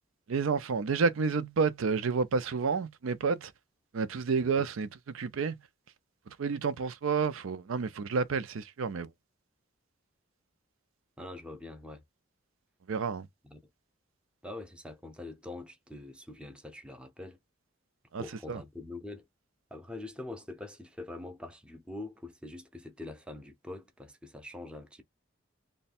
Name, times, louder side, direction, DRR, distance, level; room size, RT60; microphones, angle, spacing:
voice 1, 0.3-3.5 3.9-5.5 6.4-9.1 12.9-13.3 18.1-18.6, right 5 dB, 80° right, 0.5 m, -30 dB
voice 2, 4.4-4.7 11.2-12.0 13.4-13.6 14.4-17.4 18.2-19.3 19.7-25.0, left 2 dB, 5° right, 0.5 m, -44 dB
3.2 x 2.2 x 4.1 m
head